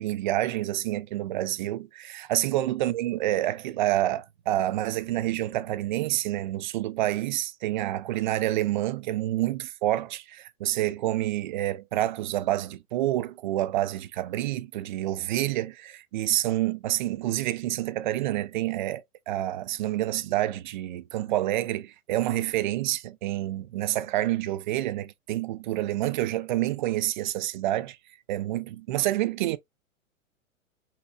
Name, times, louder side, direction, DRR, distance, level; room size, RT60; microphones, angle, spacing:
voice 1, 0.0-28.0 28.3-29.6, right 14 dB, 40° right, 0.4 m, -28 dB
5.6 x 3.0 x 2.3 m
hypercardioid pair, 115°, 40 cm